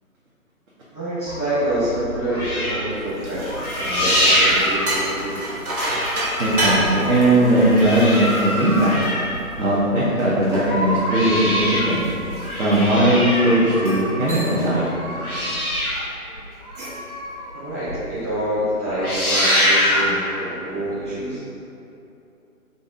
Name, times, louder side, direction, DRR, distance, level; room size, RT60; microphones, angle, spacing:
voice 1, 0.9-5.4 17.5-21.4, right 1 dB, 10° left, -17 dB, 0.6 m, -26 dB
sound 1, 1.3-5.5 5.7-10.0 10.4-17.5 17.9-18.0 18.3-18.6 18.9-20.2 21.0-21.1, equal, 75° left, 1.1 m, -24 dB
sound 2, 2.9-9.7 10.2-13.2 13.7-14.0 14.3-14.8 15.1-15.4 16.5-17.1, right 1 dB, 75° right, 1.3 m, -30 dB
voice 2, 6.4-9.0 9.6-12.0 12.6-14.9, right 1 dB, 60° right, -8 dB, 0.9 m, -18 dB
4.1 x 2.6 x 3.5 m, 2.8 s
figure-of-eight pair, 145°, 44 cm